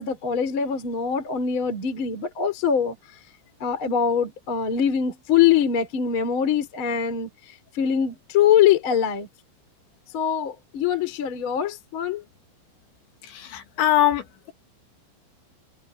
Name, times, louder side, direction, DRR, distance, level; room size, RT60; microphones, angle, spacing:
voice 1, 0.0-2.9 3.6-7.3 7.7-9.3 10.1-12.2, left 8 dB, 30° left, 3.3 m, -23 dB
voice 2, 13.3-14.2, left 12 dB, 75° left, 4.4 m, -21 dB
omnidirectional pair, 5.4 m